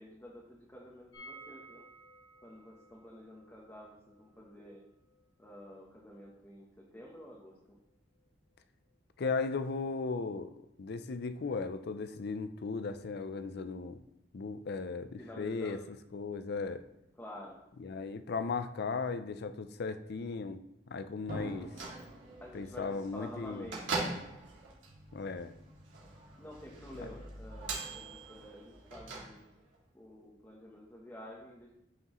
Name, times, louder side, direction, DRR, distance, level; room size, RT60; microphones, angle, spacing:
voice 1, 0.0-1.8 2.4-4.8 5.4-7.8 15.2-15.8 17.2-17.6 22.4-22.8 23.1-24.0 26.4-29.4 29.9-31.7, left 1 dB, 10° left, -3 dB, 1.0 m, -50 dB
sound 1, 1.1-6.9 7.1-7.2 7.5-7.6, right 1 dB, 85° left, 2.9 m, -56 dB
voice 2, 9.2-10.5 10.8-14.0 14.3-15.8 16.1-16.8 17.8-20.6 20.9-21.7 22.5-23.7 25.1-25.5, left 4 dB, 60° left, 11 dB, 0.5 m, -36 dB
Drum, 21.3-24.0, right 1 dB, 50° right, 1.6 m, -46 dB
Bell / Microwave oven, 21.5-29.8, right 3 dB, 90° right, 2.4 m, -43 dB
9.4 x 6.0 x 3.1 m, 0.84 s
head